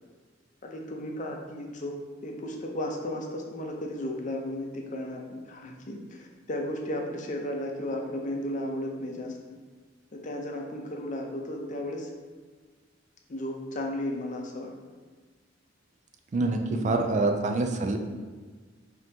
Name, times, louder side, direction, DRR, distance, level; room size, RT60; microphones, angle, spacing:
voice 1, 0.6-9.4 10.1-12.1 13.3-14.7 16.7-17.0, left 1 dB, 40° left, 1 dB, 0.5 m, -34 dB
voice 2, 16.3-18.0, right 2 dB, 40° right, 4 dB, 0.3 m, -26 dB
5.3 x 2.8 x 2.7 m, 1.5 s
head